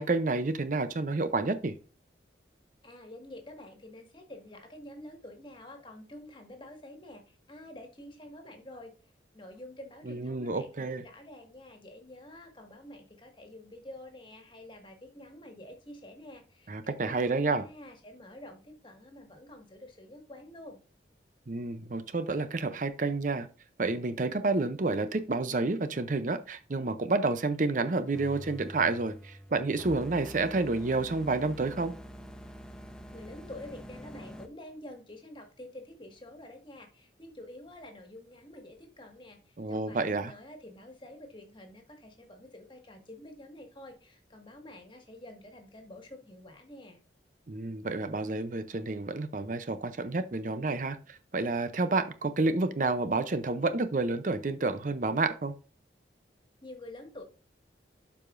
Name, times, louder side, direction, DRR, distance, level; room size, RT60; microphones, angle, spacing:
voice 1, 0.0-1.7 10.1-11.0 16.7-17.6 21.5-23.5 23.8-31.9 39.6-40.3 47.5-55.5, right 3 dB, 45° right, 0.6 m, -29 dB
voice 2, 2.8-8.9 9.3-20.8 33.1-47.0 56.6-57.2, left 1 dB, 25° left, 1.7 m, -48 dB
sound 1, 28.1-34.5, equal, 5° left, 0.7 m, -46 dB
12.0 x 4.9 x 2.5 m
head